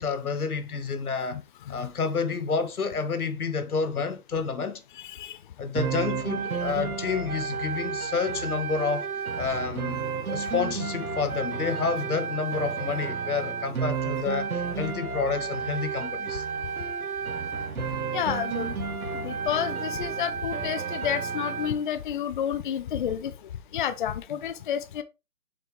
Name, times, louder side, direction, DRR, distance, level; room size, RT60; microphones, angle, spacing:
voice 1, 0.0-1.4 1.7-4.8 5.6-9.1 9.4-10.0 10.3-16.4 24.3-24.4, left 5 dB, 85° left, 1.5 m, -29 dB
voice 2, 5.0-5.4 18.1-18.7 19.2-23.3 23.7-25.0, left 9 dB, 35° left, 0.6 m, -30 dB
sound 1, 5.8-21.8, right 6 dB, 80° right, 1.6 m, -31 dB
7.6 x 5.3 x 3.2 m
hypercardioid pair, 145°, 43 cm